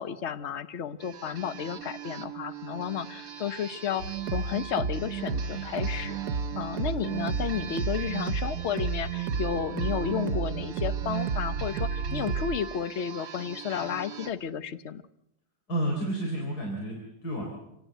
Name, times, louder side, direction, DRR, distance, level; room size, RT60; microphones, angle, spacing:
voice 1, 0.0-6.2 6.6-15.0, left 8 dB, 50° left, 13 dB, 1.2 m, -32 dB
sound 1, 1.0-14.3, right 7 dB, 65° right, 2.2 m, -42 dB
sound 2, 4.0-12.6, right 6 dB, 85° right, 1.6 m, -31 dB
voice 2, 15.7-17.4, right 1 dB, 80° left, 1 dB, 4.6 m, -31 dB
27.5 x 17.5 x 8.1 m, 0.86 s
omnidirectional pair, 1.7 m